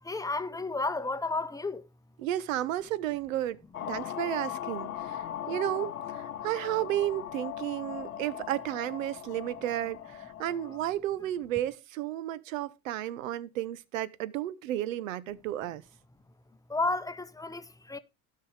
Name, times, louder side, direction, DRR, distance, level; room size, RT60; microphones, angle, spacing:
voice 1, 0.0-1.9 16.7-18.0, left 3 dB, 10° left, 0.8 m, -32 dB
voice 2, 2.2-3.6 3.9-15.8, right 13 dB, 70° right, 0.8 m, -33 dB
sound 1, 3.7-10.8, left 11 dB, 80° left, 0.9 m, -39 dB
16.0 x 5.6 x 3.2 m
figure-of-eight pair, 75°, 41 cm